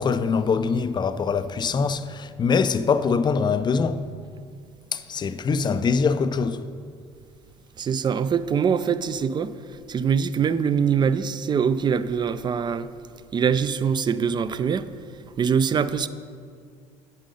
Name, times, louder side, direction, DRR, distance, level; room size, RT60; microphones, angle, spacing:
voice 1, 0.0-4.1 4.9-6.7, left 5 dB, 30° left, 0.4 m, -23 dB
voice 2, 7.8-12.9 13.3-14.9 15.4-16.1, right 7 dB, 30° right, 0.4 m, -23 dB
8.9 x 5.4 x 5.3 m
hypercardioid pair, 60°, 15 cm